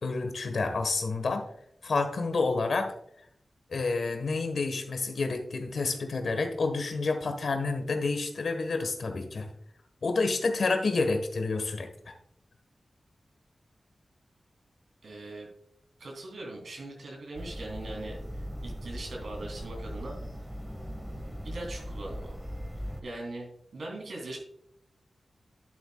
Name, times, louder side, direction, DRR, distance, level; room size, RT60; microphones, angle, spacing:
voice 1, 0.0-1.4 1.8-2.9 3.7-9.5 10.0-12.1, left 3 dB, 80° left, 7 dB, 1.3 m, -29 dB
voice 2, 15.0-15.5 16.0-20.2 21.4-22.4 23.0-23.5 23.7-24.4, right 2 dB, 85° right, 0 dB, 2.8 m, -40 dB
sound 1, 17.3-23.0, equal, 5° right, 1.5 m, -39 dB
10.5 x 9.5 x 2.3 m, 0.69 s
wide cardioid pair, 90°, 0 cm